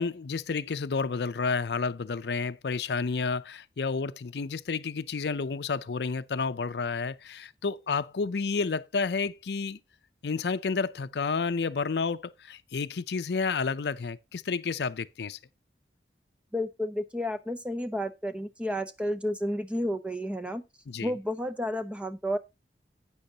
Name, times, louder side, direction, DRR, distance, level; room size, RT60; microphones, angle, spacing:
voice 1, 0.0-9.8 10.2-15.4 20.9-21.1, left 4 dB, 70° left, 0.5 m, -30 dB
voice 2, 16.5-20.6 21.0-22.4, equal, 5° right, 0.7 m, -31 dB
12.0 x 8.7 x 2.8 m
head